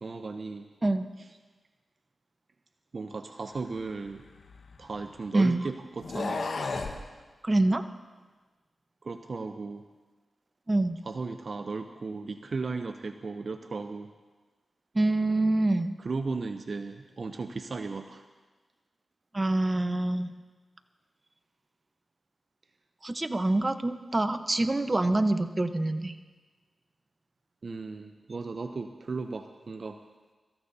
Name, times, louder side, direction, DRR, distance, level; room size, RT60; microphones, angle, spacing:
voice 1, 0.0-0.7 1.2-1.3 2.9-4.2 4.8-6.5 9.0-9.9 11.0-14.1 16.0-18.2 27.6-30.0, right 4 dB, 60° right, 7 dB, 0.6 m, -36 dB
sound 1, 3.7-5.2 6.0-7.0, left 3 dB, 70° left, 1.3 m, -35 dB
voice 2, 7.4-7.8 10.7-11.0 14.9-15.9 19.3-20.3 23.0-26.1, right 2 dB, 30° right, 9 dB, 1.0 m, -26 dB
24.5 x 14.5 x 2.8 m, 1.3 s
cardioid pair, 45°, 0 cm